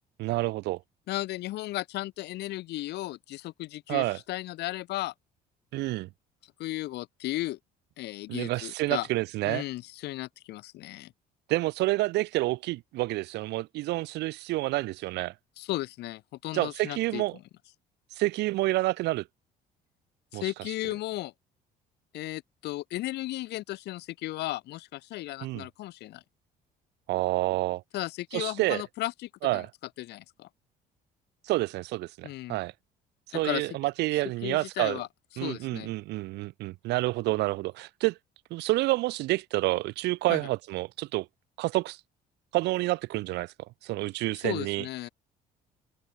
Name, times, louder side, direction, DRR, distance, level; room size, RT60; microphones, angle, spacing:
voice 1, 0.2-0.8 3.9-4.2 5.7-6.1 8.3-9.6 11.5-15.3 16.5-17.4 18.2-19.2 20.3-20.4 25.4-25.6 27.1-27.8 28.3-28.8 29.4-29.7 31.5-32.7 33.3-35.0 35.4-38.2 38.5-41.3 41.6-42.0 42.5-43.5 43.8-44.8, right 19 dB, 85° right, 2.0 m, -28 dB
voice 2, 1.1-5.1 6.6-7.6 8.0-9.1 9.4-11.1 15.6-17.4 20.3-21.3 22.1-26.2 27.9-29.7 30.0-30.5 32.2-32.6 33.3-33.7 34.4-35.1 35.3-35.9 40.3-40.4 44.4-45.1, left 16 dB, 80° left, 3.7 m, -35 dB
cardioid pair, 110°, 17 cm